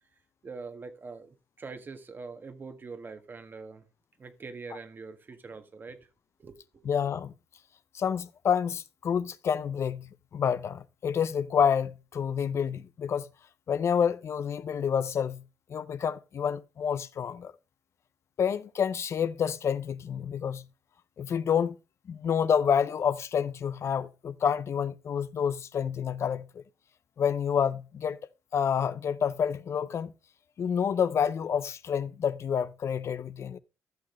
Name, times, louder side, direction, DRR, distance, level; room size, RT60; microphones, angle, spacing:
voice 1, 0.4-3.8 4.2-6.1 6.4-6.9, right 4 dB, 35° right, 1.6 m, -43 dB
voice 2, 6.8-7.3 7.9-13.3 13.7-15.4 15.7-17.5 18.4-20.6 21.2-21.7 22.1-26.6 27.2-28.2 28.5-30.1 30.6-33.6, left 7 dB, 55° left, 0.6 m, -28 dB
14.0 x 6.5 x 3.1 m
cardioid pair, 95°, 6 cm